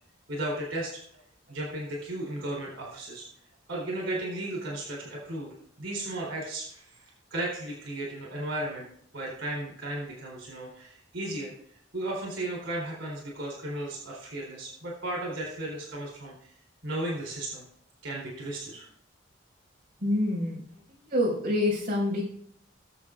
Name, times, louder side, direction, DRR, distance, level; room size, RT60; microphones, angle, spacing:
voice 1, 0.3-1.0 1.5-3.3 3.7-8.9 9.1-11.5 11.9-16.5 16.8-17.6 18.0-18.9, right 1 dB, 85° right, -3 dB, 3.9 m, -35 dB
voice 2, 20.0-20.6 21.1-22.2, left 1 dB, 45° right, -5 dB, 5.3 m, -26 dB
19.5 x 7.6 x 2.5 m, 0.63 s
head